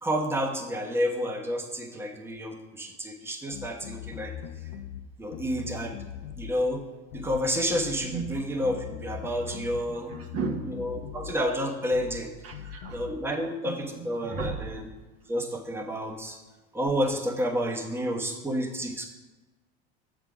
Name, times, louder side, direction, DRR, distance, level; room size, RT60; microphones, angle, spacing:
voice 1, 0.0-4.3 5.2-6.0 6.4-6.8 7.1-10.1 10.7-12.3 12.9-14.9 15.3-16.4 16.7-19.1, equal, 10° right, 0 dB, 1.1 m, -30 dB
sound 1, 3.5-5.0 5.3-6.6 7.1-7.4 7.7-9.8 10.1-11.4 11.9-12.2 12.5-13.1, left 10 dB, 80° left, 0.6 m, -40 dB
voice 2, 10.1-10.7 12.4-13.0 13.6-14.6, right 5 dB, 50° right, 3 dB, 1.1 m, -34 dB
7.2 x 3.9 x 6.0 m, 1.2 s
hypercardioid pair, 90°, 30 cm